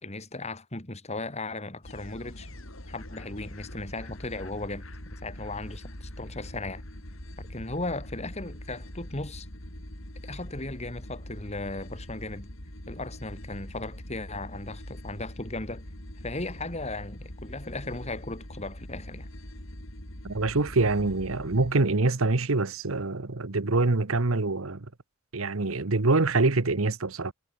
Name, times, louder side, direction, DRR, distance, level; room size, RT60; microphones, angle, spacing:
voice 1, 0.0-2.5 2.9-6.8 7.4-9.5 10.2-12.5 12.9-15.8 16.2-19.3, left 2 dB, 30° left, 2.7 m, -37 dB
sound 1, 1.8-21.7, left 1 dB, 70° left, 5.9 m, -43 dB
voice 2, 20.2-24.9 25.3-27.3, right 3 dB, 75° right, 1.2 m, -25 dB
head